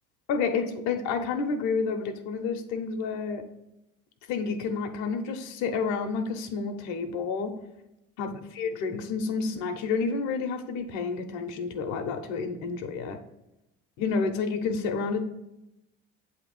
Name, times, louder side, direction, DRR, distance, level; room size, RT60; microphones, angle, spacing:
voice 1, 0.3-3.4 4.3-7.5 8.2-13.2 14.0-15.2, left 5 dB, 75° left, 5 dB, 0.8 m, -30 dB
8.0 x 2.9 x 5.3 m, 0.90 s
supercardioid pair, 90°, 29 cm